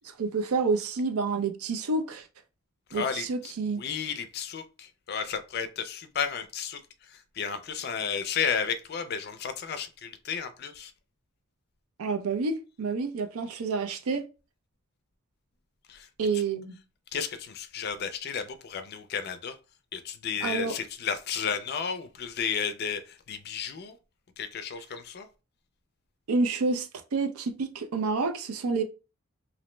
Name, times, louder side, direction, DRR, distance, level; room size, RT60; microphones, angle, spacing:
voice 1, 0.2-2.3 2.9-3.8 12.0-14.3 16.2-16.8 20.4-20.8 26.3-28.8, right 4 dB, 85° right, 0.5 m, -28 dB
voice 2, 2.9-3.5 3.8-6.8 7.1-10.9 15.9-16.1 16.3-16.4 17.1-19.6 19.9-24.0 24.4-25.3, left 7 dB, 50° left, 0.3 m, -33 dB
2.6 x 2.0 x 3.1 m
head